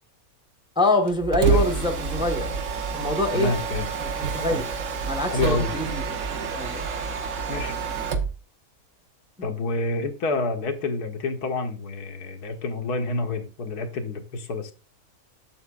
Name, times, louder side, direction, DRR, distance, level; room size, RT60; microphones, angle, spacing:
voice 1, 0.8-2.5 2.9-3.5 4.0-4.7 5.0-6.0 6.5-6.8 9.4-9.5, left 1 dB, 5° right, 0.9 m, -25 dB
Mechanisms, 1.1-8.4, right 5 dB, 60° right, 1.2 m, -28 dB
voice 2, 3.3-3.9 4.5-4.6 5.3-5.8 7.5-7.8 9.4-14.7, left 3 dB, 85° left, 1.7 m, -28 dB
8.0 x 7.5 x 2.4 m
omnidirectional pair, 1.6 m